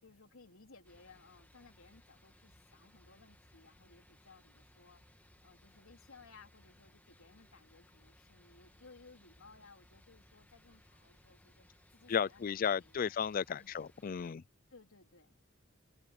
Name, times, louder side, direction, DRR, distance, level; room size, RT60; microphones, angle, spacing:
voice 1, 0.0-5.0 5.4-11.7 11.9-13.2 13.6-13.8 14.7-15.3, left 4 dB, 85° left, 3.3 m, -60 dB
sound 1, 0.8-14.3, left 1 dB, 10° left, 1.6 m, -65 dB
voice 2, 12.1-14.4, left 7 dB, 40° left, 0.3 m, -34 dB
head